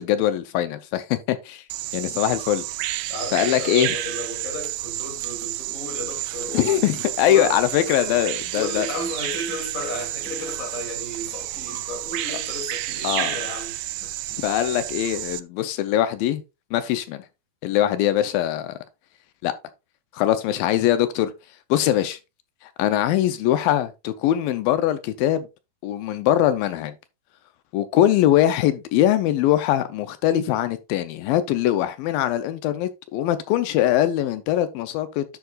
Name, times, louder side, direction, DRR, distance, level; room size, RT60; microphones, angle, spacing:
voice 1, 0.0-1.6 1.9-2.6 3.3-3.9 6.5-8.9 13.0-13.4 14.4-16.4 16.7-17.3 17.6-18.8 19.4-19.5 20.1-21.3 21.7-22.2 22.8-25.5 25.8-26.9 27.7-35.2, left 12 dB, 85° left, 2.4 m, -22 dB
Bird vocalization bird call bird song, 1.7-15.4, right 15 dB, 90° right, 1.7 m, -30 dB
voice 2, 3.1-6.9 7.2-8.2 8.5-14.1, left 2 dB, 25° left, 2.6 m, -34 dB
10.5 x 7.1 x 2.4 m
omnidirectional pair, 4.2 m